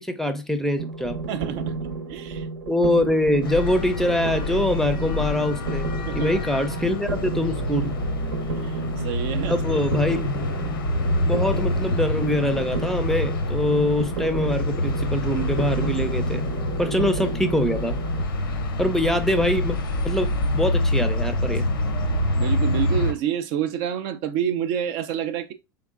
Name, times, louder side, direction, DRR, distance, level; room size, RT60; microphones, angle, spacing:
voice 1, 0.0-1.2 2.7-7.9 9.5-10.8 11.2-16.4 16.8-18.0 18.8-19.8 20.0-21.6, left 1 dB, 5° left, 0.5 m, -24 dB
sound 1, 0.8-18.3, right 4 dB, 80° right, 0.9 m, -32 dB
voice 2, 1.3-1.8 2.1-2.5 6.0-6.4 8.5-9.8 22.4-25.5, right 9 dB, 55° right, 0.4 m, -28 dB
sound 2, 3.4-23.1, left 1 dB, 85° left, 0.7 m, -26 dB
3.7 x 3.5 x 2.4 m
hypercardioid pair, 90°, 11 cm